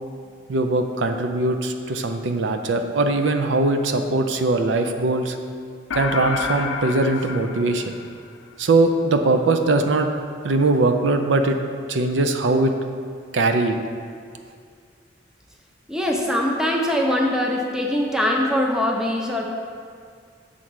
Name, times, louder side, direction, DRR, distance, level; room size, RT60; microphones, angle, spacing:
voice 1, 0.5-5.4 5.9-8.0 8.6-10.1 10.4-11.6 11.9-12.7 13.3-13.8, right 2 dB, 70° right, 5 dB, 0.5 m, -21 dB
sound 1, 5.9-8.5, left 5 dB, 85° left, 0.4 m, -29 dB
voice 2, 15.9-19.5, left 1 dB, 5° right, 0 dB, 0.6 m, -22 dB
7.1 x 3.8 x 6.2 m, 2.2 s
head